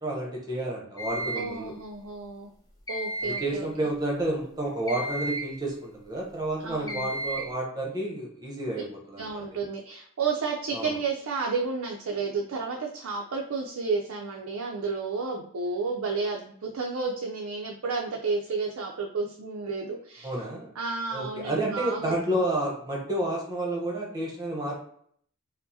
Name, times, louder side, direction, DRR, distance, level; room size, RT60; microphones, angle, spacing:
voice 1, 0.0-1.7 3.2-9.5 10.7-10.9 20.2-20.7 21.1-24.7, right 1 dB, 15° right, -2 dB, 0.9 m, -30 dB
sound 1, 1.0-1.6 2.9-3.6 4.9-5.6 6.9-7.5, right 1 dB, 15° left, 0.6 m, -33 dB
voice 2, 1.3-2.5 2.9-3.7 6.6-7.1 9.2-20.3 20.8-22.4, right 4 dB, 65° right, 0 dB, 0.5 m, -31 dB
4.5 x 2.1 x 2.7 m, 0.63 s
head